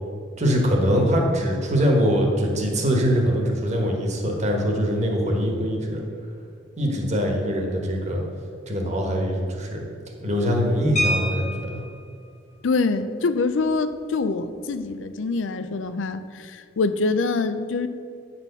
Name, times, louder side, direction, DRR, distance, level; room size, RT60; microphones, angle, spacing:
voice 1, 0.4-6.0 6.8-8.2 8.7-9.8 10.2-11.8, equal, 40° right, 1 dB, 1.4 m, -23 dB
sound 1, 11.0-12.0 13.5-13.6 13.9-14.1 14.5-14.8, left 1 dB, 40° left, 1.1 m, -27 dB
voice 2, 12.6-17.9, left 3 dB, 80° left, 11 dB, 0.5 m, -25 dB
8.9 x 4.3 x 6.8 m, 2.3 s
head